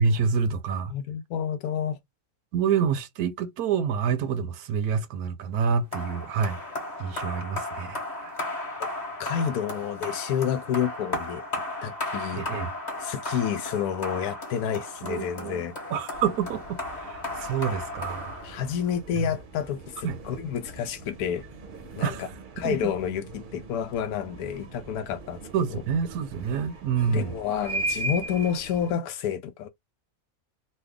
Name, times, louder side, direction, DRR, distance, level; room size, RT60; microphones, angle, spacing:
voice 1, 0.0-0.9 2.5-6.6 7.0-8.3 12.3-12.7 15.0-15.6 15.9-18.4 19.1-19.3 20.0-20.2 22.0-22.8 25.5-27.3, right 6 dB, 85° right, 1.1 m, -27 dB
voice 2, 0.9-2.0 8.8-8.9 9.2-11.4 11.8-12.4 13.0-15.7 18.4-21.4 22.0-22.3 22.6-25.4 25.7-25.8 27.1-29.7, left 8 dB, 90° left, 1.1 m, -29 dB
sound 1, 5.9-18.9, left 2 dB, 30° left, 1.3 m, -35 dB
sound 2, 16.1-28.9, right 2 dB, 45° right, 0.7 m, -39 dB
3.2 x 2.3 x 3.5 m
omnidirectional pair, 1.5 m